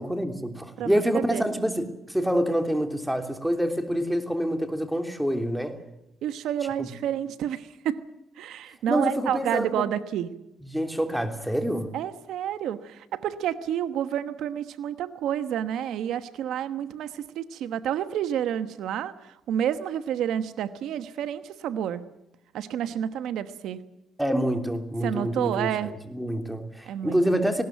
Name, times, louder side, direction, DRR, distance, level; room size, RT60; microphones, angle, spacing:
voice 1, 0.0-5.8 6.8-6.9 8.9-9.8 10.7-11.9 24.2-25.7 26.1-27.6, equal, 5° right, 3.2 m, -26 dB
voice 2, 0.8-1.4 6.2-8.0 8.4-10.3 11.9-22.0 22.5-23.8 25.0-26.0 26.9-27.2, right 10 dB, 80° right, 1.1 m, -29 dB
19.5 x 18.0 x 9.2 m
cardioid pair, 90°, 0 cm